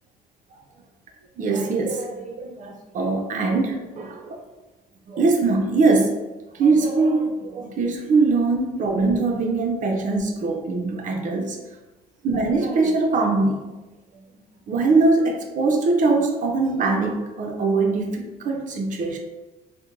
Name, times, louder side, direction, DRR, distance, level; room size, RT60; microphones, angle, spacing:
voice 1, 1.4-4.4 5.1-6.2 6.6-11.6 12.2-13.6 14.7-19.2, right 3 dB, 50° right, 2 dB, 0.6 m, -22 dB
4.3 x 2.2 x 2.5 m, 1.1 s
cardioid pair, 110°, 17 cm